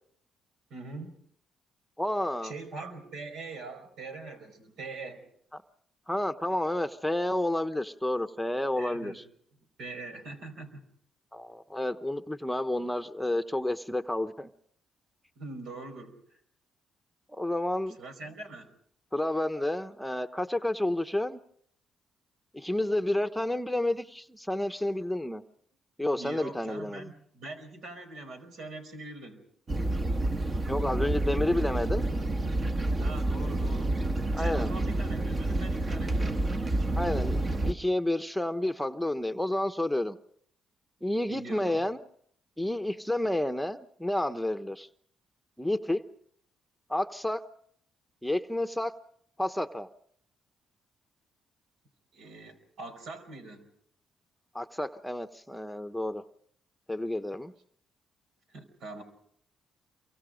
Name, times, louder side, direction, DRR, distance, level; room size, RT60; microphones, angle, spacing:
voice 1, 0.7-1.2 2.4-5.3 8.7-9.2 9.8-10.9 15.4-16.2 18.0-18.7 26.2-29.4 33.0-34.0 34.4-36.5 41.3-41.8 52.1-53.7 58.5-59.0, right 3 dB, 80° right, 7 dB, 5.0 m, -43 dB
voice 2, 2.0-2.5 5.5-5.6 6.1-9.2 11.3-14.5 17.3-18.0 19.1-21.4 22.5-25.4 26.0-27.1 30.7-32.1 34.3-34.7 37.0-40.2 41.0-42.0 42.6-44.9 45.6-46.0 46.9-47.4 48.2-48.9 49.4-49.9 54.5-56.2 56.9-57.5, left 1 dB, ahead, 8 dB, 1.0 m, -30 dB
sound 1, 29.7-37.7, right 2 dB, 35° right, 1.5 m, -29 dB
28.5 x 24.0 x 5.1 m, 0.66 s
cardioid pair, 90°, 0 cm